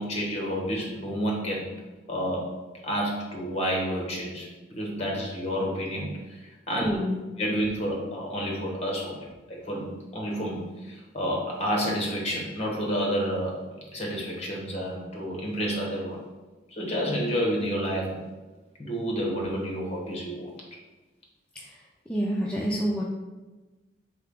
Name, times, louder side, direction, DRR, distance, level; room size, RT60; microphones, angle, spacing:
voice 1, 0.0-1.7 2.1-2.5 2.8-7.0 7.4-16.2 16.7-18.2 18.8-20.4, equal, 35° left, -1 dB, 1.0 m, -30 dB
voice 2, 6.8-7.2 21.5-23.0, equal, 5° left, -4 dB, 0.3 m, -28 dB
3.7 x 3.4 x 3.5 m, 1.2 s
head